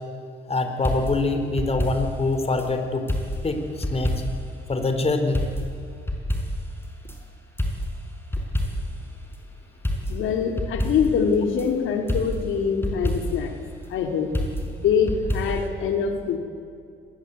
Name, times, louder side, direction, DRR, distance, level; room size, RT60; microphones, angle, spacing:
voice 1, 0.5-3.1 3.4-3.6 3.9-4.2 4.7-5.4, left 3 dB, 30° left, 6 dB, 3.8 m, -24 dB
sound 1, 0.8-2.7 3.1-4.6 4.8-4.9 5.3-7.2 7.6-9.1 9.3-9.4 9.8-11.7 12.1-13.5 14.3-15.7, equal, 10° left, 5.5 m, -28 dB
voice 2, 10.1-13.6 13.9-14.3 14.6-16.4, left 6 dB, 85° left, 4 dB, 2.7 m, -24 dB
24.5 x 20.5 x 8.3 m, 2.4 s
cardioid pair, 90°, 20 cm